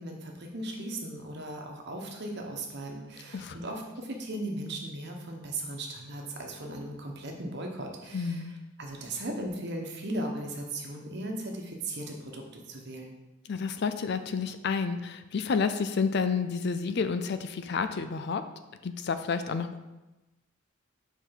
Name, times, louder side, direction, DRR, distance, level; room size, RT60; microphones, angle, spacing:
voice 1, 0.0-8.4 8.8-13.2, right 1 dB, 55° right, 1 dB, 1.1 m, -37 dB
voice 2, 8.1-8.5 13.4-18.4 18.8-19.8, left 5 dB, 55° left, 10 dB, 0.4 m, -30 dB
5.6 x 4.7 x 5.8 m, 1.1 s
head